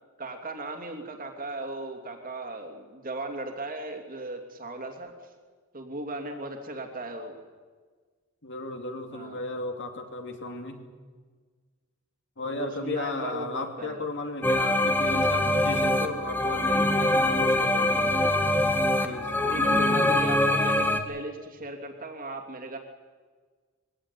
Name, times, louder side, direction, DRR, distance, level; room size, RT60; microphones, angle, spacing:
voice 1, 0.2-5.1 5.7-7.4 9.1-9.4 12.4-14.1 19.5-22.8, right 2 dB, 40° right, 4 dB, 2.9 m, -37 dB
voice 2, 8.4-10.8 12.4-18.2 19.0-20.2, left 2 dB, 55° left, 4 dB, 2.7 m, -35 dB
sound 1, 14.4-21.0, left 1 dB, 10° left, 1.5 m, -23 dB
21.5 x 16.5 x 10.0 m, 1.5 s
head